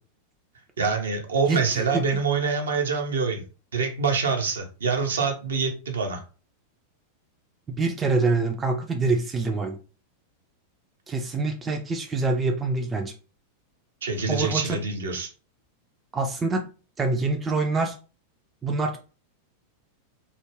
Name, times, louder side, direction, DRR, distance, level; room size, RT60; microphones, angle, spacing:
voice 1, 0.8-3.4 3.7-6.2 14.0-15.3, right 4 dB, 65° right, 3 dB, 0.6 m, -25 dB
voice 2, 1.5-2.0 7.8-9.8 11.1-13.1 14.3-14.8 16.1-16.7 17.0-18.0 18.6-19.0, right 3 dB, 20° right, 3 dB, 0.4 m, -25 dB
2.4 x 2.1 x 3.1 m, 0.35 s
figure-of-eight pair, 90°, 0 cm